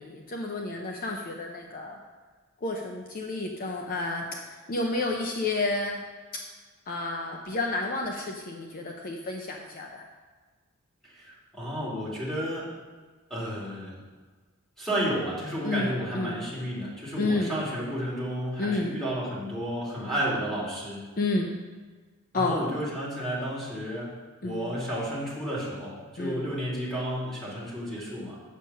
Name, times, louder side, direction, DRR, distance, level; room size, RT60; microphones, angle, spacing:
voice 1, 0.0-2.0 2.6-6.0 6.9-10.0 15.6-16.4 17.2-17.5 18.6-19.0 21.2-21.5 22.3-22.6 24.4-24.7 26.2-26.4, left 2 dB, 45° left, 2 dB, 0.7 m, -30 dB
voice 2, 11.0-12.7 13.3-13.9 14.8-21.0 22.3-24.1 24.4-28.4, equal, ahead, -7 dB, 2.8 m, -32 dB
7.4 x 6.8 x 5.6 m, 1.4 s
head